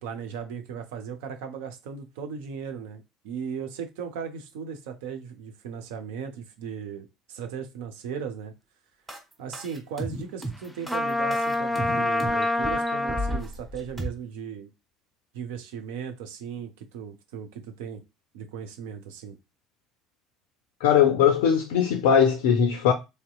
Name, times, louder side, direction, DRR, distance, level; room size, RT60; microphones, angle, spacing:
voice 1, 0.0-8.5 9.4-14.7 15.3-18.0 18.3-19.4, right 7 dB, 65° right, 0.5 m, -37 dB
sound 1, 9.1-14.1, right 1 dB, 25° right, 1.5 m, -34 dB
Trumpet, 10.9-13.4, left 2 dB, ahead, 0.5 m, -26 dB
voice 2, 20.8-22.9, left 8 dB, 65° left, 0.3 m, -20 dB
3.2 x 2.8 x 2.2 m
figure-of-eight pair, 60°, 0 cm